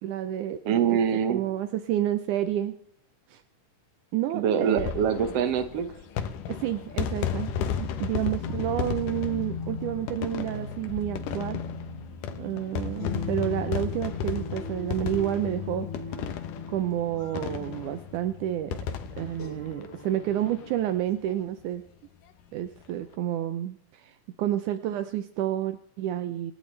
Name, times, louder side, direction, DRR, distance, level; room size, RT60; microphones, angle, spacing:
voice 1, 0.0-0.6 0.9-1.0 1.3-2.7 3.3-3.4 4.1-4.9 6.5-7.5 7.8-11.6 12.4-16.3 16.7-18.8 19.2-21.8 22.5-26.5, right 12 dB, 75° right, 10 dB, 2.1 m, -30 dB
voice 2, 0.7-1.4 4.3-5.9, right 8 dB, 55° right, 8 dB, 2.1 m, -24 dB
sound 1, 4.6-20.7 21.0-21.1 21.3-21.4 22.7-22.9, left 8 dB, 85° left, 2.7 m, -35 dB
sound 2, 8.4-20.9, left 5 dB, 65° left, 4.4 m, -38 dB
27.0 x 11.5 x 3.3 m, 0.65 s
omnidirectional pair, 3.7 m